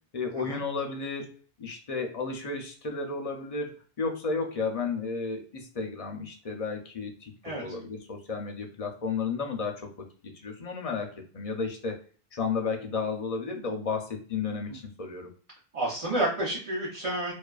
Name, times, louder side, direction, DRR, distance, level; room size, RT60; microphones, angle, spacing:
voice 1, 0.1-12.0 12.3-15.3, left 4 dB, 50° left, 3 dB, 0.5 m, -33 dB
voice 2, 15.7-17.3, right 1 dB, 35° right, -6 dB, 0.8 m, -29 dB
2.4 x 2.3 x 2.3 m, 0.42 s
omnidirectional pair, 1.1 m